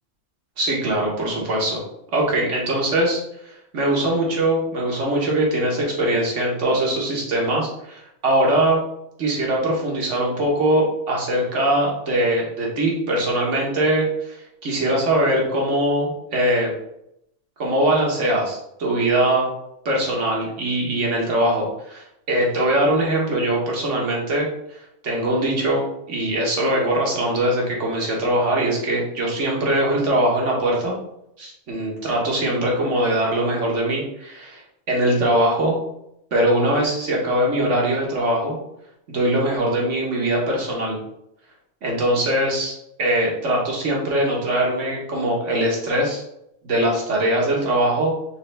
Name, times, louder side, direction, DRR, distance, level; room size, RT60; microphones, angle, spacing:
voice 1, 0.6-1.8 2.1-3.2 3.4-8.8 9.2-16.8 17.6-19.5 19.8-24.8 25.0-31.0 31.4-34.6 34.9-35.8 36.3-38.6 39.1-41.0 41.8-42.7 43.0-46.2 46.6-48.1, right 1 dB, 60° right, -2 dB, 1.5 m, -21 dB
4.4 x 3.3 x 3.3 m, 0.78 s
omnidirectional pair, 1.4 m